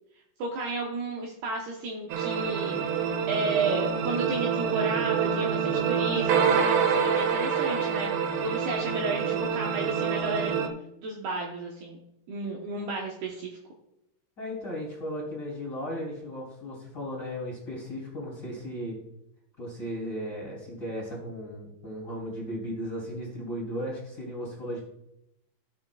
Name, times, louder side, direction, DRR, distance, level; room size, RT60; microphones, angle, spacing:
voice 1, 0.4-10.6 11.0-12.0 12.3-13.6, right 3 dB, 70° right, -1 dB, 2.6 m, -33 dB
sound 1, 2.1-10.7, right 7 dB, 90° right, 3.4 m, -26 dB
voice 2, 14.4-19.0 19.6-24.8, equal, 30° left, -5 dB, 2.5 m, -36 dB
16.0 x 7.0 x 2.3 m, 0.82 s
omnidirectional pair, 5.6 m